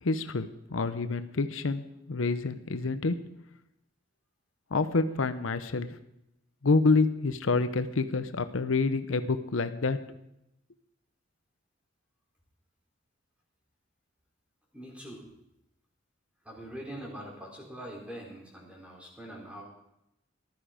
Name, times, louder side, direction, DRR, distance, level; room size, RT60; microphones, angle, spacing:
voice 1, 0.0-3.1 4.7-6.0 6.6-10.0, left 3 dB, 85° left, 11 dB, 0.8 m, -27 dB
voice 2, 14.7-15.2 16.4-19.6, equal, 5° right, -2 dB, 4.1 m, -43 dB
15.0 x 12.5 x 5.1 m, 0.84 s
head